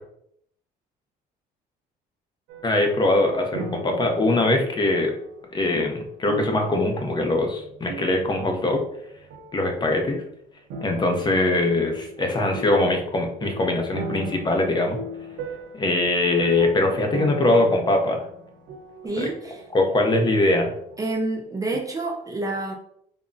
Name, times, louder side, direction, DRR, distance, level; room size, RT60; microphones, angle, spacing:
sound 1, 2.5-9.0 9.3-10.1 10.7-21.4 21.7-21.8, right 2 dB, 85° right, 0.5 m, -39 dB
voice 1, 2.6-5.1 5.5-8.8 9.5-10.2 10.8-15.0 15.8-18.2 19.2-19.3 19.7-20.7, left 2 dB, 25° left, 3 dB, 0.5 m, -22 dB
voice 2, 19.0-19.9 21.0-22.7, right 2 dB, 20° right, 1 dB, 0.3 m, -28 dB
3.6 x 2.0 x 2.5 m, 0.71 s
cardioid pair, 110°, 17 cm